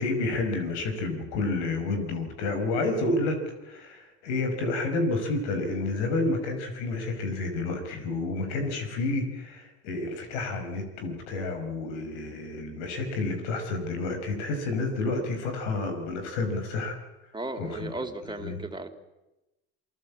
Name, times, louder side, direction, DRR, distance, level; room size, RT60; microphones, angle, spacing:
voice 1, 0.0-3.4 3.7-16.9 17.6-17.9 18.4-18.6, left 2 dB, 85° left, 6 dB, 5.5 m, -30 dB
voice 2, 17.3-18.9, right 2 dB, 15° right, 5 dB, 3.8 m, -35 dB
28.0 x 19.0 x 8.5 m, 1.0 s
supercardioid pair, 70°, 34 cm